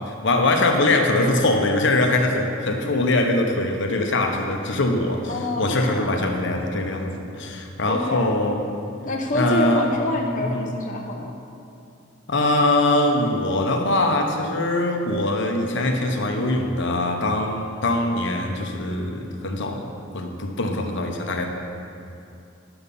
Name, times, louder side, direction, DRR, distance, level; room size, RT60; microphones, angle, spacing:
voice 1, 0.1-8.6 9.3-9.9 10.5-10.7 12.3-19.9 20.1-21.5, left 2 dB, 65° left, 3 dB, 1.0 m, -22 dB
voice 2, 5.3-6.0 7.9-8.3 9.0-11.3, left 1 dB, 45° left, -1 dB, 0.8 m, -26 dB
10.5 x 7.0 x 5.4 m, 2.7 s
head